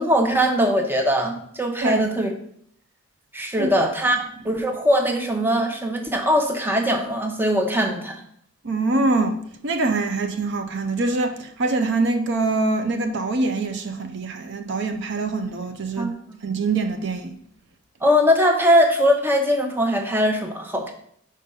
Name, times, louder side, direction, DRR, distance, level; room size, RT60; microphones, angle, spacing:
voice 1, 0.0-2.3 3.3-4.2 4.4-8.2 16.0-16.4 18.0-20.9, equal, 10° right, 0.7 m, -21 dB
voice 2, 8.6-16.1 16.4-17.4, right 3 dB, 55° right, 0.5 m, -24 dB
5.2 x 5.2 x 5.4 m
head